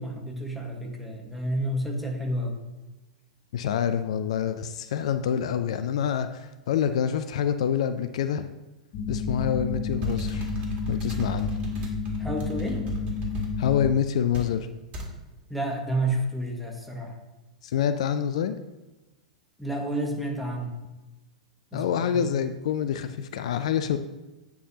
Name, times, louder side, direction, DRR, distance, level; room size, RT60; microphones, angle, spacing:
voice 1, 0.0-2.6 12.2-12.9 15.5-17.2 19.6-20.7 21.7-22.2, right 1 dB, ahead, 0 dB, 1.3 m, -30 dB
voice 2, 3.5-8.5 9.1-10.5 10.9-11.5 13.6-14.7 17.6-18.6 21.7-24.0, left 8 dB, 65° left, 10 dB, 0.4 m, -26 dB
sound 1, 8.9-13.9, left 4 dB, 45° left, 0.9 m, -31 dB
sound 2, 9.9-13.5 14.3-14.5 14.9-15.1, right 1 dB, 35° right, 1.8 m, -37 dB
8.9 x 4.6 x 2.8 m, 1.1 s
hypercardioid pair, 100°, 4 cm